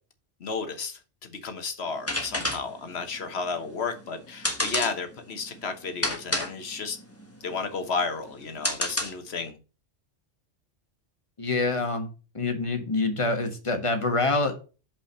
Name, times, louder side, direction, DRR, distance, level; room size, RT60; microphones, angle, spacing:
voice 1, 0.4-7.0 7.4-9.6, left 4 dB, 70° left, 1.4 m, -32 dB
sound 1, 1.9-9.5, left 1 dB, 15° left, 1.2 m, -32 dB
voice 2, 11.4-12.1 12.3-14.5, left 3 dB, 30° left, 1.4 m, -26 dB
5.5 x 5.1 x 6.5 m
omnidirectional pair, 1.1 m